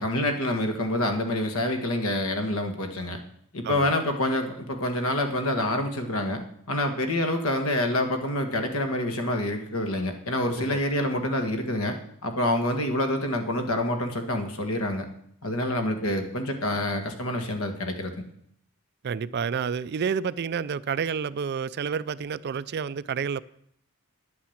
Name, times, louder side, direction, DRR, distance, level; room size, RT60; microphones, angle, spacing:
voice 1, 0.0-3.2 3.5-15.1 15.4-18.1, left 1 dB, 65° left, 1.7 m, -27 dB
voice 2, 19.0-23.4, right 6 dB, 45° right, 0.4 m, -29 dB
10.5 x 8.6 x 7.2 m
head